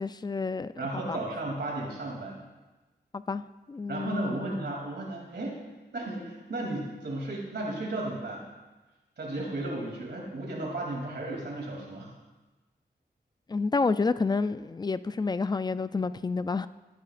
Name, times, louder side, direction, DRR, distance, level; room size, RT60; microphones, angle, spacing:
voice 1, 0.0-0.7 1.1-1.2 3.1-3.4 3.7-4.5 13.5-16.7, left 4 dB, 25° left, 14 dB, 0.3 m, -29 dB
voice 2, 0.8-2.4 3.9-5.6 5.9-8.5 9.2-12.1, right 2 dB, 75° right, -2 dB, 2.9 m, -34 dB
14.5 x 9.3 x 2.5 m, 1.2 s
wide cardioid pair, 70°, 18 cm